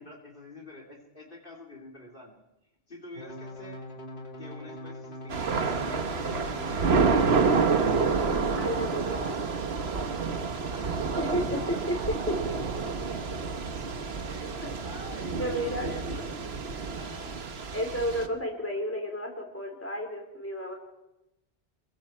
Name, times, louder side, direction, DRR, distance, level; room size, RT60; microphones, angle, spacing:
voice 1, 0.0-2.4 2.9-3.8 4.4-7.6 10.7-11.0 11.3-12.0 13.8-13.9 14.2-16.3 17.0-17.4, left 2 dB, 55° left, 1 dB, 3.1 m, -46 dB
sound 1, 3.1-7.2 8.0-8.5, left 1 dB, 75° left, 3.2 m, -41 dB
Thunder / Rain, 5.3-18.3, right 4 dB, 70° right, 1.4 m, -28 dB
voice 2, 8.5-9.6 11.1-12.2 14.6-14.7 15.4-15.9 17.7-20.7, equal, 15° left, 1 dB, 4.4 m, -32 dB
27.0 x 22.5 x 4.4 m, 0.91 s
omnidirectional pair, 1.1 m